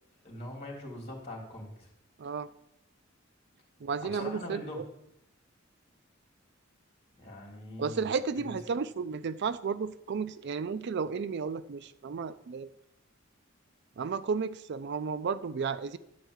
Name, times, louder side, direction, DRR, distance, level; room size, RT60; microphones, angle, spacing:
voice 1, 0.2-1.9 4.0-4.8 7.2-8.1 8.3-8.6, left 1 dB, 30° left, -1 dB, 3.2 m, -42 dB
voice 2, 2.2-2.5 3.8-4.8 7.8-12.7 14.0-16.0, right 5 dB, 60° right, 15 dB, 0.4 m, -33 dB
12.0 x 4.6 x 8.0 m, 0.81 s
head